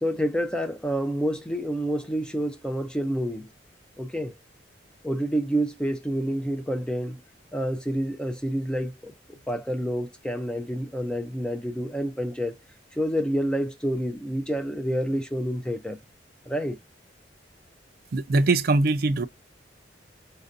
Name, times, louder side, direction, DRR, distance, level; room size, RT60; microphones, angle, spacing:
voice 1, 0.0-3.5 4.0-4.3 5.0-7.2 7.5-12.6 12.9-16.0 16.5-16.8, equal, 5° left, 0.4 m, -28 dB
voice 2, 18.1-19.3, right 2 dB, 55° right, 0.4 m, -22 dB
4.3 x 2.6 x 2.5 m
head